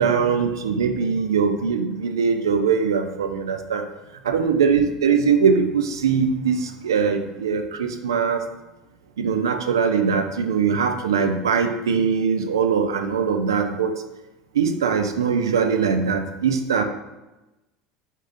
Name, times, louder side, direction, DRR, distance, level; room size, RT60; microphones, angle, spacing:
voice 1, 0.0-3.9 4.2-8.4 9.2-14.0 14.5-16.8, right 6 dB, 85° right, 6 dB, 0.4 m, -21 dB
4.7 x 2.7 x 3.8 m, 1.0 s
hypercardioid pair, 75°, 2 cm